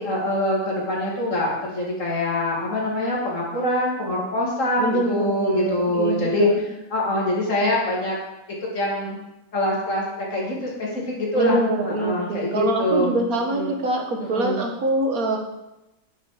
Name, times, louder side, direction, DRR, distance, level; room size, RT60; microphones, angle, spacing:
voice 1, 0.0-6.5 6.9-8.2 8.6-9.2 9.5-13.2 13.5-13.7 14.2-14.6, left 1 dB, 60° left, -3 dB, 2.9 m, -24 dB
voice 2, 4.8-6.6 11.3-15.4, right 2 dB, 80° right, 2 dB, 1.9 m, -24 dB
9.0 x 7.7 x 4.9 m, 0.96 s
omnidirectional pair, 1.5 m